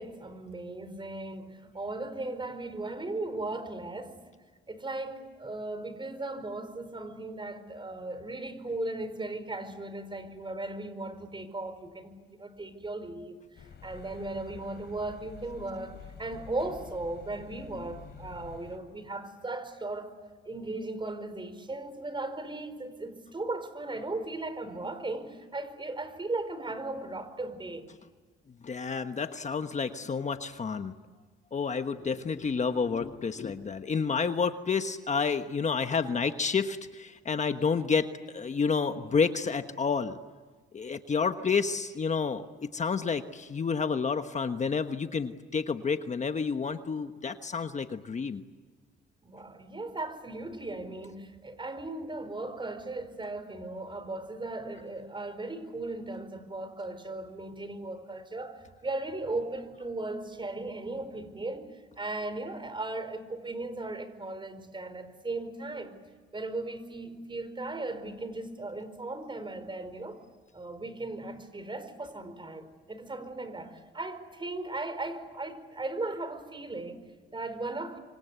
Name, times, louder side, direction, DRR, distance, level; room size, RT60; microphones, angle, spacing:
voice 1, 0.0-4.2 4.7-20.1 20.4-27.9 49.2-58.6 58.8-66.0 66.3-70.2 70.5-78.0, right 2 dB, 25° right, 4.6 m, -37 dB
sound 1, 13.6-18.8, left 7 dB, 60° left, 3.8 m, -48 dB
voice 2, 28.6-30.9 31.5-40.2 40.7-48.4, left 5 dB, 35° left, 1.3 m, -30 dB
26.5 x 25.0 x 8.3 m
cardioid pair, 90°, 20 cm